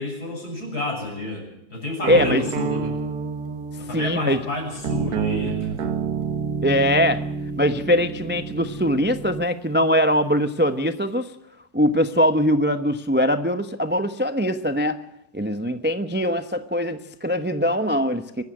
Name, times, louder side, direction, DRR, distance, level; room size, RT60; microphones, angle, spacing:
voice 1, 0.0-3.0 3.8-5.7, left 2 dB, 60° left, 2 dB, 7.7 m, -30 dB
sound 1, 2.0-9.5, right 6 dB, 60° right, 1.6 m, -29 dB
voice 2, 2.1-2.4 3.9-4.4 6.6-7.2 7.6-11.3 11.7-15.0 15.3-18.4, equal, 10° right, 9 dB, 0.6 m, -22 dB
24.0 x 13.0 x 9.7 m, 0.82 s
omnidirectional pair, 1.9 m